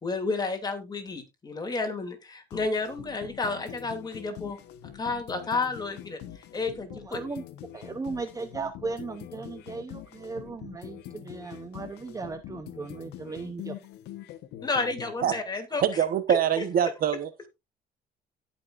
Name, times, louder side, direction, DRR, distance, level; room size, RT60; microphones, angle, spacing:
voice 1, 0.0-4.6 5.0-6.2 6.5-7.2 14.6-15.8 16.6-16.7, left 3 dB, 25° left, 2.7 m, -31 dB
sound 1, 2.5-15.4, left 12 dB, 85° left, 1.1 m, -44 dB
voice 2, 7.1-7.4 7.7-13.8, right 4 dB, 20° right, 0.8 m, -36 dB
voice 3, 15.8-17.3, right 9 dB, 60° right, 1.1 m, -24 dB
17.0 x 5.8 x 2.5 m
cardioid pair, 110°, 17 cm